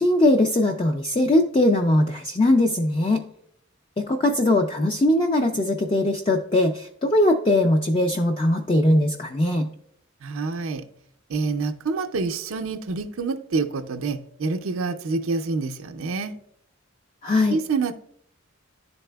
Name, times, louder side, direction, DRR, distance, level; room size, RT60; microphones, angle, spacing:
voice 1, 0.0-3.3 4.0-9.7 17.2-17.6, left 1 dB, 25° left, 3 dB, 0.3 m, -20 dB
voice 2, 10.2-10.8 11.3-16.3 17.5-17.9, right 4 dB, 80° right, 5 dB, 0.5 m, -27 dB
11.0 x 4.1 x 2.2 m, 0.67 s
head